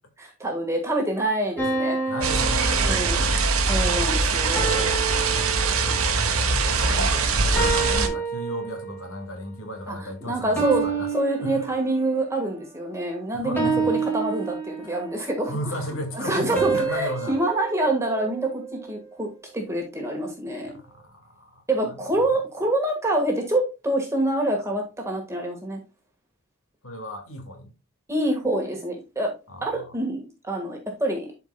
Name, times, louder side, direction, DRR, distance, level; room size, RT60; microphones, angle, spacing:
voice 1, 0.2-2.0 2.8-3.2 3.7-5.0 8.0-8.1 9.9-10.8 11.1-15.5 16.1-18.6 18.9-19.3 19.5-20.7 21.7-25.8 28.1-29.3 29.6-31.3, right 1 dB, 15° right, 1.5 m, -26 dB
sound 1, 1.6-3.5 4.6-6.2 7.6-9.1 10.6-12.2 13.6-15.2 16.6-18.9, right 5 dB, 10° left, 2.0 m, -29 dB
voice 2, 2.1-3.7 5.0-11.1 11.4-11.7 13.3-13.9 15.5-17.4 20.6-22.3 26.8-27.7 29.5-30.0, equal, 70° left, 1.8 m, -36 dB
sound 2, 2.2-8.1, right 4 dB, 75° right, 1.2 m, -22 dB
11.5 x 4.6 x 2.2 m
head